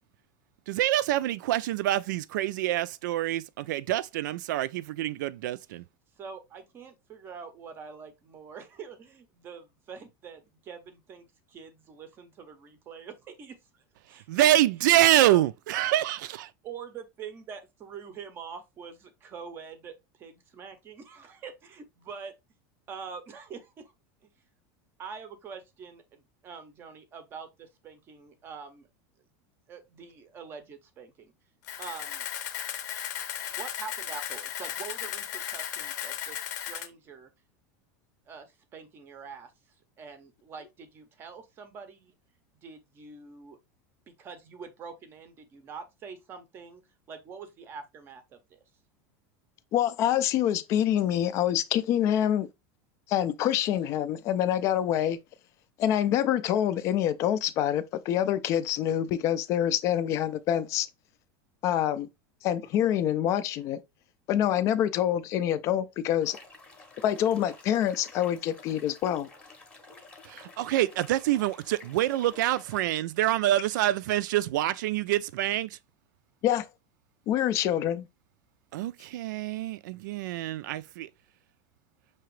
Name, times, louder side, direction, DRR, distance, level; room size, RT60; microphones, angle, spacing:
voice 1, 0.7-5.8 14.3-16.5 70.2-75.8 78.7-80.8, right 14 dB, 75° right, 0.4 m, -26 dB
voice 2, 6.2-13.1 13.4-13.5 14.1-14.2 15.2-15.4 16.6-22.3 22.9-23.9 25.0-28.9 29.7-31.3 31.8-32.3 33.5-37.3 38.3-39.5 40.0-42.1 42.6-43.6 44.1-46.8 47.1-48.2 48.5-48.6, right 6 dB, 20° right, 0.6 m, -44 dB
Camera, 31.6-36.9, left 10 dB, 65° left, 0.8 m, -36 dB
voice 3, 49.7-52.5 53.1-55.2 55.8-60.9 61.6-62.1 62.4-63.8 64.3-66.4 67.0-69.3 76.4-76.7 77.3-78.1, left 11 dB, 30° left, 0.4 m, -26 dB
sound 1, 66.2-72.8, left 3 dB, 10° left, 0.8 m, -51 dB
5.9 x 2.8 x 3.1 m
supercardioid pair, 175°, 10 cm